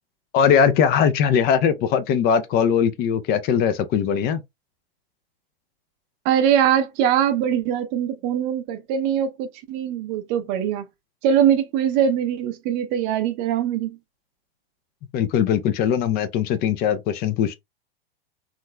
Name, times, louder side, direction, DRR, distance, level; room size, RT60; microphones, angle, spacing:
voice 1, 0.3-4.4 15.1-17.6, left 8 dB, 30° left, 0.5 m, -20 dB
voice 2, 6.2-10.8 11.2-14.0, right 9 dB, 40° right, 0.7 m, -22 dB
3.7 x 3.1 x 2.2 m
hypercardioid pair, 105°, 30 cm